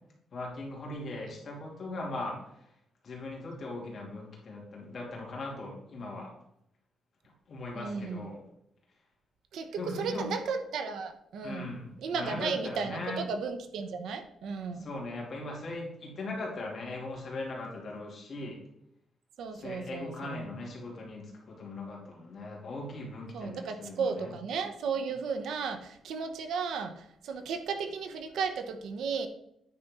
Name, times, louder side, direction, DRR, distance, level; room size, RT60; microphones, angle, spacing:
voice 1, 0.3-2.7 3.0-6.3 7.5-8.4 9.8-10.3 11.4-13.2 14.7-18.6 19.5-24.3, left 2 dB, 40° left, -2 dB, 2.7 m, -39 dB
voice 2, 7.7-8.3 9.5-11.7 12.0-14.9 19.4-20.4 23.3-29.3, right 5 dB, 80° right, 7 dB, 1.0 m, -34 dB
9.5 x 4.3 x 5.5 m, 0.75 s
cardioid pair, 155°, 0 cm